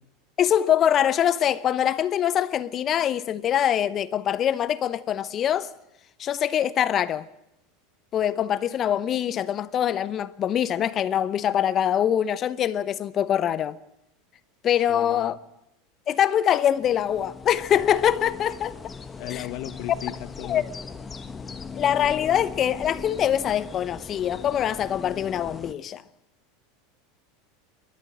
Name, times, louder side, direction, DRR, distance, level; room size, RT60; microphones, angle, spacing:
voice 1, 0.4-5.7 6.2-7.3 8.1-13.8 14.6-15.4 16.1-18.8 19.3-19.4 20.5-20.6 21.7-26.0, left 10 dB, 40° left, 0.8 m, -24 dB
voice 2, 14.9-15.4 19.2-20.7, left 14 dB, 55° left, 1.1 m, -36 dB
sound 1, 16.7-25.7, left 5 dB, 20° left, 1.4 m, -39 dB
29.5 x 13.0 x 9.6 m
hypercardioid pair, 85°, 0 cm